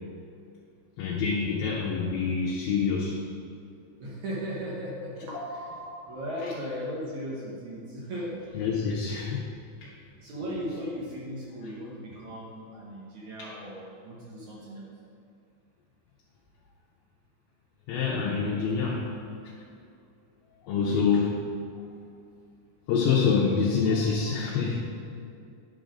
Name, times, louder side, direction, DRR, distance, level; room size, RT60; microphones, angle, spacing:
voice 1, 1.0-3.2 8.5-9.4 9.8-9.9 13.4-13.5 17.9-19.0 20.7-21.3 22.9-24.8, left 5 dB, 75° left, -4 dB, 2.3 m, -26 dB
voice 2, 4.0-8.4 10.2-14.9 20.7-21.1 23.9-24.0 24.2-24.4, equal, 75° right, -6 dB, 1.7 m, -37 dB
10.5 x 3.9 x 5.1 m, 2.5 s
omnidirectional pair, 5.0 m